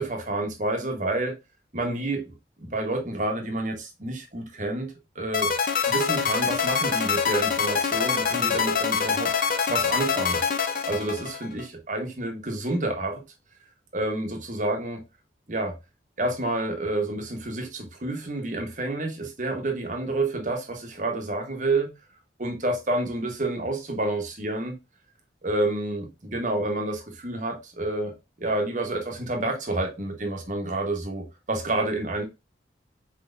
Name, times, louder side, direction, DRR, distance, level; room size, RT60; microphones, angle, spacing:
voice 1, 0.0-1.4 1.7-5.5 5.9-9.3 9.7-13.2 13.9-15.0 15.5-15.7 16.2-21.9 22.4-24.8 25.4-32.2, right 2 dB, 45° right, 1.2 m, -29 dB
sound 1, 5.3-11.6, left 6 dB, 50° left, 0.6 m, -25 dB
4.5 x 4.1 x 2.5 m
head